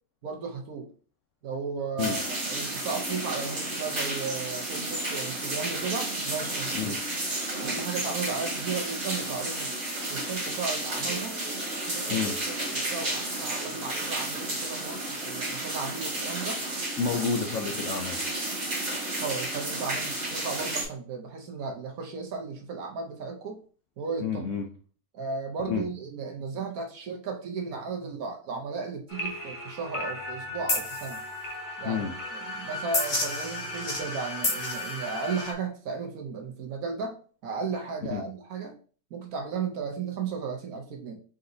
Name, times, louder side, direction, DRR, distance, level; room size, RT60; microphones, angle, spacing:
voice 1, 0.2-0.9 1.4-6.9 7.6-9.7 10.1-11.4 11.8-12.2 12.5-16.6 19.2-23.6 24.0-24.4 25.1-31.2 31.8-32.1 32.3-37.2 37.4-38.7 39.1-41.2, right 5 dB, 65° right, 2 dB, 1.2 m, -35 dB
sound 1, 2.0-20.8, right 1 dB, 40° right, 2.0 m, -32 dB
voice 2, 17.0-18.2 24.2-24.7 25.7-25.8 31.8-32.1 38.1-38.2, left 6 dB, 75° left, 4 dB, 0.7 m, -29 dB
sound 2, 29.1-35.5, left 2 dB, 35° left, 0.8 m, -32 dB
4.0 x 3.9 x 2.6 m, 0.40 s
omnidirectional pair, 1.8 m